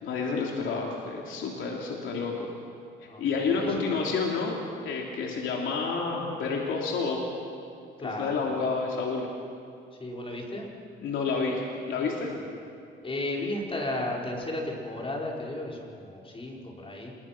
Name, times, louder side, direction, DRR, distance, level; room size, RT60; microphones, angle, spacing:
voice 1, 0.0-2.5 3.0-4.5 4.8-7.2 8.0-9.3 11.0-11.6 11.9-12.3, left 4 dB, 80° left, -1 dB, 3.1 m, -29 dB
voice 2, 3.1-4.0 8.0-8.5 10.0-10.7 12.3-12.4 13.0-17.1, left 1 dB, 25° left, -2 dB, 5.3 m, -34 dB
27.5 x 22.0 x 6.1 m, 2.4 s
cardioid pair, 90°, 20 cm